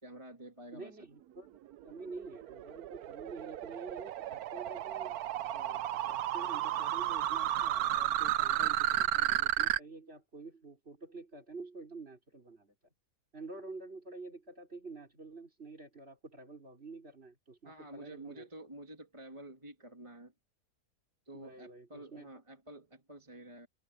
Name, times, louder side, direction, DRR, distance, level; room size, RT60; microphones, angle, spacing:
voice 1, 0.0-0.9 17.6-20.3 21.3-23.7, right 1 dB, 20° right, 2.4 m, -49 dB
voice 2, 0.7-1.6 1.8-5.2 5.5-12.7 13.3-18.5 21.3-22.3, right 3 dB, 40° right, 4.7 m, -48 dB
sound 1, 1.7-9.8, right 12 dB, 70° right, 1.1 m, -33 dB
omnidirectional pair, 1.7 m